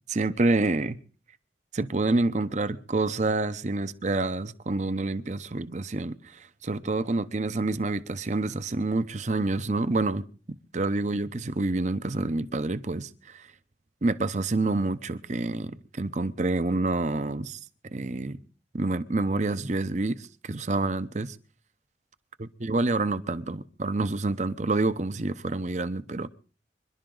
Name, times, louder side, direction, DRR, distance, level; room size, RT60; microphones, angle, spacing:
voice 1, 0.1-1.0 1.7-13.4 14.0-17.6 17.9-18.4 18.7-21.4 22.6-26.3, right 2 dB, 40° right, 0.8 m, -28 dB
26.0 x 11.5 x 3.9 m
head